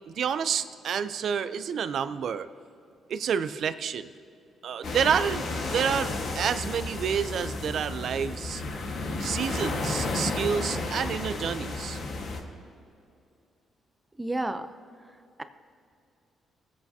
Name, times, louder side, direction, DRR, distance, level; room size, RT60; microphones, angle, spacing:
voice 1, 0.1-2.5 3.1-4.1 4.6-8.6 9.2-12.0, right 7 dB, 65° right, 11 dB, 0.6 m, -29 dB
sound 1, 4.8-12.4, left 2 dB, 60° left, 1.5 m, -32 dB
voice 2, 14.2-14.7, right 1 dB, 10° right, 9 dB, 0.6 m, -30 dB
22.5 x 8.2 x 2.8 m, 2.5 s
cardioid pair, 90°, 0 cm